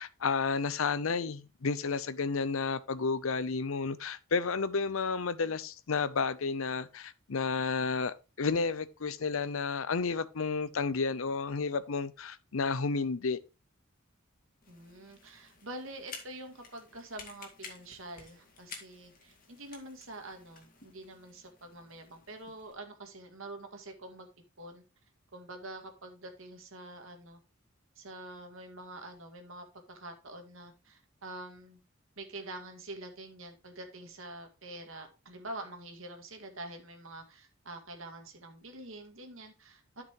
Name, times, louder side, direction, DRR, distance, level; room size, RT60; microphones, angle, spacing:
voice 1, 0.0-13.4, left 4 dB, 75° left, 0.6 m, -31 dB
sound 1, 14.6-22.7, left 5 dB, 40° left, 2.1 m, -52 dB
voice 2, 14.7-24.3 24.6-24.8 25.3-27.4 28.0-31.8 32.2-40.0, right 2 dB, 75° right, 2.0 m, -46 dB
12.0 x 6.1 x 3.1 m
head